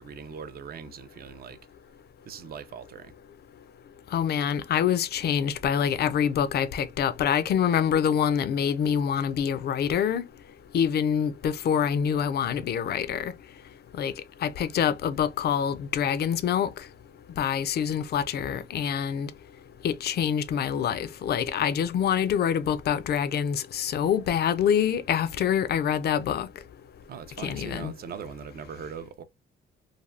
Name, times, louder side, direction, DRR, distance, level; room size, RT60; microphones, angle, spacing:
voice 1, 0.0-1.6 2.2-3.1 27.1-29.2, right 6 dB, 50° right, 0.5 m, -40 dB
voice 2, 4.1-10.2 10.7-13.3 14.0-14.1 14.4-16.7 17.4-19.3 19.8-26.5 27.4-27.9, left 8 dB, 55° left, 0.4 m, -26 dB
3.3 x 2.2 x 2.3 m
cardioid pair, 90°, 20 cm